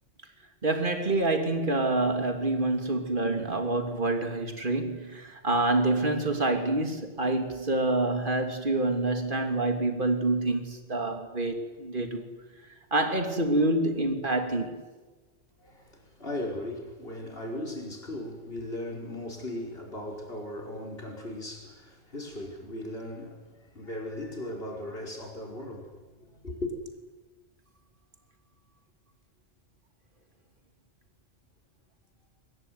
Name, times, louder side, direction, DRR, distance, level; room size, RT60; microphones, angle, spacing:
voice 1, 0.6-12.3 12.9-14.8, right 2 dB, 40° right, 3.0 m, -27 dB
voice 2, 15.6-26.7, left 1 dB, 50° left, 5.5 m, -38 dB
23.5 x 21.0 x 9.5 m
omnidirectional pair, 1.3 m